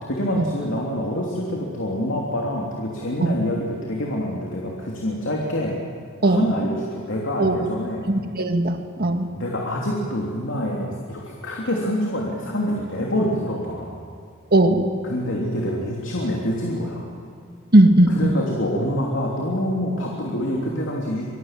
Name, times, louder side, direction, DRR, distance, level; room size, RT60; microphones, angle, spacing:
voice 1, 0.0-5.8 6.2-8.1 9.4-14.0 15.0-17.1 18.1-21.3, equal, 60° left, -2 dB, 3.2 m, -26 dB
voice 2, 8.1-9.3 14.5-14.9 17.7-18.3, right 1 dB, 45° right, 5 dB, 1.8 m, -18 dB
25.5 x 22.5 x 7.6 m, 2.4 s
head